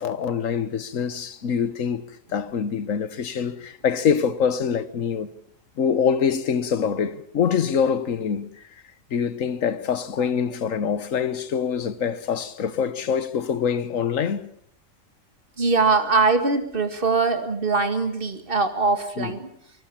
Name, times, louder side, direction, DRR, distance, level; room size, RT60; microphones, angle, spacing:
voice 1, 0.0-5.3 5.8-8.5 9.1-14.5 19.2-19.4, left 7 dB, 65° left, 1.5 m, -25 dB
voice 2, 15.6-19.5, right 4 dB, 40° right, 2.3 m, -22 dB
24.5 x 19.5 x 7.3 m
omnidirectional pair, 1.5 m